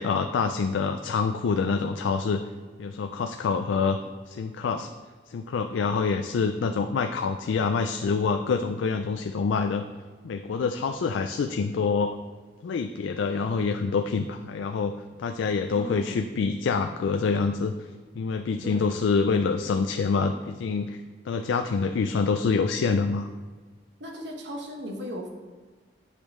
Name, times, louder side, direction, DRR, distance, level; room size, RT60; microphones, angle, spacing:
voice 1, 0.0-2.4 2.8-4.0 4.3-4.9 5.3-9.8 10.2-12.1 12.6-14.9 15.2-17.9 18.1-23.3, left 5 dB, 85° left, 6 dB, 0.3 m, -26 dB
voice 2, 15.7-16.2 18.6-19.0 24.0-25.3, equal, 70° right, 1 dB, 1.1 m, -37 dB
8.2 x 5.0 x 3.7 m, 1.5 s
head